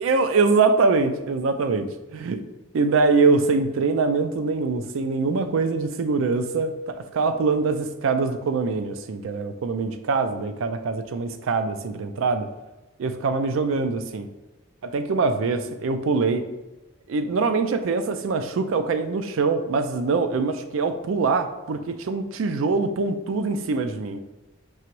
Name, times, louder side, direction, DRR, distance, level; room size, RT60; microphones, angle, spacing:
voice 1, 0.0-2.4 2.7-12.5 13.0-14.3 14.8-16.5 17.1-24.2, right 4 dB, 75° right, 9 dB, 0.4 m, -23 dB
4.7 x 2.9 x 3.0 m, 1.1 s
head